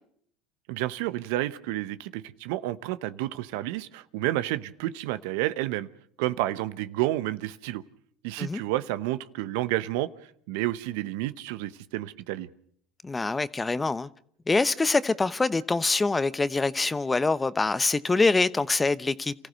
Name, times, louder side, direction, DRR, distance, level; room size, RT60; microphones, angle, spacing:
voice 1, 0.7-5.9 6.2-7.8 8.2-10.1 10.5-12.5, right 16 dB, 75° right, 0.8 m, -30 dB
voice 2, 13.0-14.1 14.5-19.3, left 3 dB, 20° left, 0.9 m, -25 dB
28.0 x 15.0 x 6.5 m
hypercardioid pair, 80°, 0 cm